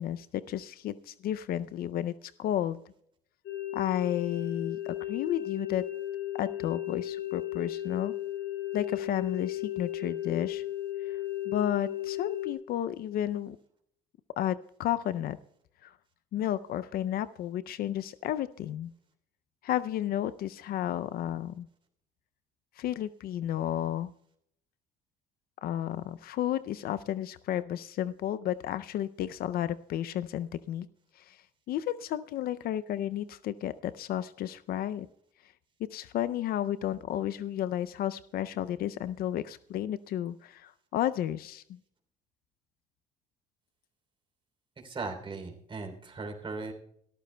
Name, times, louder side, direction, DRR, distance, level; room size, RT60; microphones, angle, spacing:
voice 1, 0.0-2.8 3.7-5.8 6.3-8.1 8.7-10.6 11.1-11.2 11.5-13.6 14.4-15.4 15.8-15.9 16.3-18.9 19.6-21.7 22.8-24.1 25.6-30.9 31.2-31.4 31.7-35.1 35.9-41.8, left 11 dB, 65° left, 15 dB, 0.5 m, -32 dB
sound 1, 3.5-12.5, left 13 dB, 80° left, 2.0 m, -35 dB
voice 2, 44.8-46.7, right 3 dB, 30° right, 2 dB, 3.2 m, -38 dB
23.0 x 13.5 x 2.2 m, 0.69 s
cardioid pair, 110°, 17 cm